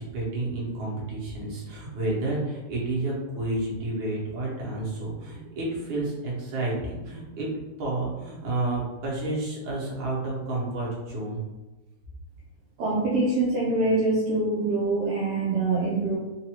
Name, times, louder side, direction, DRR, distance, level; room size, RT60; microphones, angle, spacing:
voice 1, 0.0-7.5 7.8-11.4, right 2 dB, 55° right, -5 dB, 1.5 m, -30 dB
voice 2, 12.8-16.2, right 2 dB, 80° right, -5 dB, 1.4 m, -24 dB
4.7 x 2.6 x 2.9 m, 1.1 s
omnidirectional pair, 3.5 m